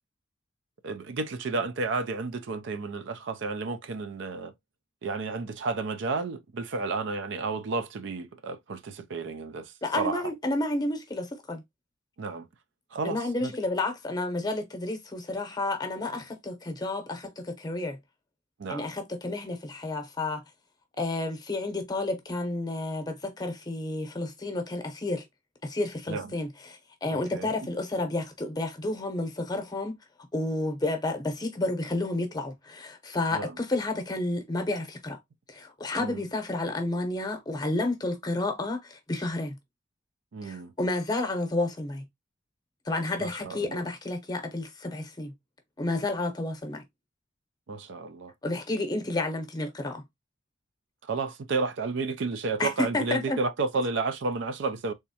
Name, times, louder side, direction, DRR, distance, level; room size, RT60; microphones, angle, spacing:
voice 1, 0.8-4.5 5.0-10.2 12.2-12.5 12.9-13.5 18.6-18.9 26.1-26.3 27.1-27.5 33.3-33.5 36.0-36.2 40.3-40.7 43.2-43.8 47.7-48.3 51.1-54.9, right 3 dB, 60° right, 0.4 m, -32 dB
voice 2, 9.8-11.6 13.0-18.0 18.7-20.4 21.0-25.2 25.6-29.9 30.3-35.2 35.5-39.6 40.4-42.0 42.9-45.3 45.8-46.8 48.4-50.0 52.6-53.4, left 2 dB, 20° left, 0.8 m, -31 dB
3.5 x 3.0 x 2.8 m
head